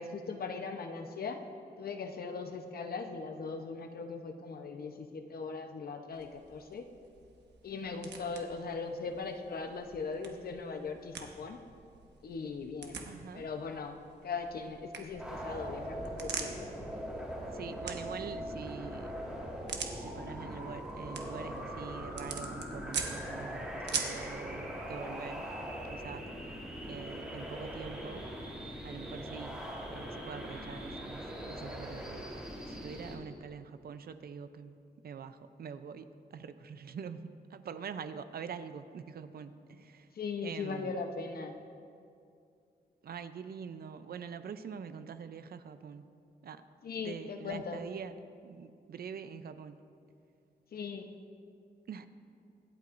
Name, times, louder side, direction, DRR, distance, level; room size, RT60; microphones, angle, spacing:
voice 1, 0.0-1.4 1.8-6.9 7.6-11.6 12.2-13.0 13.3-14.0 14.2-16.7 40.1-41.6 46.8-47.8 50.7-51.1, left 4 dB, 60° left, 5 dB, 0.9 m, -39 dB
sound 1, 6.1-24.3, right 6 dB, 85° right, 1.1 m, -45 dB
voice 2, 13.1-13.5 17.5-19.1 19.9-25.5 25.9-26.6 26.9-28.2 28.8-29.6 29.9-32.3 32.7-34.8 35.0-40.1 40.4-40.9 43.0-46.0 46.4-46.6 47.0-48.1 48.4-49.8 51.9-52.1, right 6 dB, 65° right, 11 dB, 0.6 m, -45 dB
sound 2, 15.1-33.1, equal, 5° right, 2.9 m, -41 dB
25.0 x 8.4 x 2.6 m, 2.4 s
wide cardioid pair, 125°, 17 cm